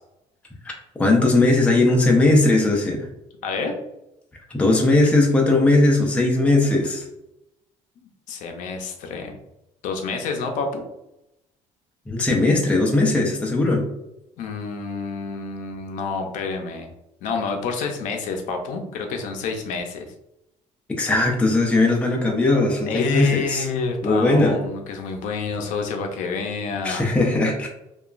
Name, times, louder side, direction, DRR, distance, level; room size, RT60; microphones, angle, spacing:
voice 1, 1.0-3.1 4.5-7.0 12.1-13.8 20.9-23.7 24.0-24.6 26.8-27.7, left 2 dB, 10° left, 0 dB, 0.4 m, -19 dB
voice 2, 3.4-3.8 8.0-9.4 9.8-10.8 14.4-16.9 17.2-20.1 22.9-27.1, left 4 dB, 75° left, 4 dB, 0.5 m, -28 dB
2.8 x 2.2 x 2.4 m, 0.87 s
cardioid pair, 160°, 13 cm